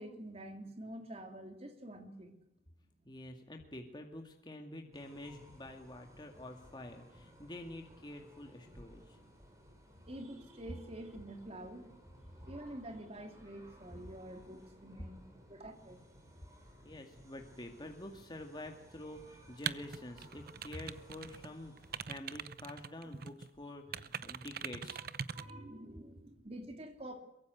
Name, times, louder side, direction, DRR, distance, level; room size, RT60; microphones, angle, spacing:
voice 1, 0.0-2.3 3.0-3.2 10.0-11.9 12.5-16.0 23.9-24.0 24.9-27.2, right 1 dB, 35° right, 6 dB, 3.1 m, -48 dB
voice 2, 3.1-9.2 12.4-12.5 16.8-25.0, left 1 dB, 25° left, 3 dB, 2.2 m, -48 dB
sound 1, 4.9-22.1, equal, 15° right, 6.5 m, -59 dB
sound 2, 19.6-21.5 21.8-23.5 23.9-25.5, right 7 dB, 55° right, 0.8 m, -42 dB
23.5 x 22.5 x 8.1 m, 0.84 s
head